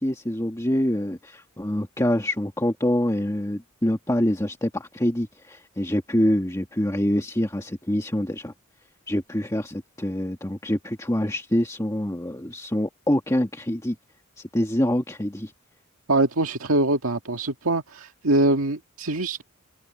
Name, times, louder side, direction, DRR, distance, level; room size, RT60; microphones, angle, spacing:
voice 1, 0.0-8.5 9.1-13.9 14.4-15.5, left 1 dB, 15° left, 1.9 m, -25 dB
voice 2, 16.1-19.4, right 2 dB, 80° right, 1.9 m, -23 dB
head